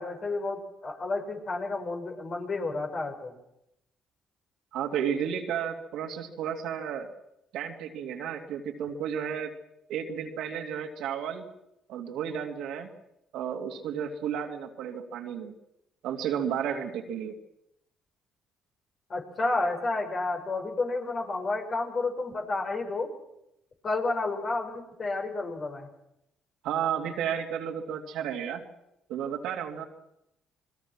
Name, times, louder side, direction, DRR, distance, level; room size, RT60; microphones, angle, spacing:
voice 1, 0.0-3.3 19.1-23.1 23.8-25.9, left 3 dB, 50° left, 2 dB, 6.4 m, -31 dB
voice 2, 4.7-7.1 7.5-9.5 9.9-11.4 11.9-12.9 13.3-15.5 16.0-17.4 26.6-28.7 29.1-29.8, right 8 dB, 75° right, 3 dB, 2.8 m, -32 dB
27.0 x 21.0 x 6.2 m, 0.83 s
supercardioid pair, 60°, 0 cm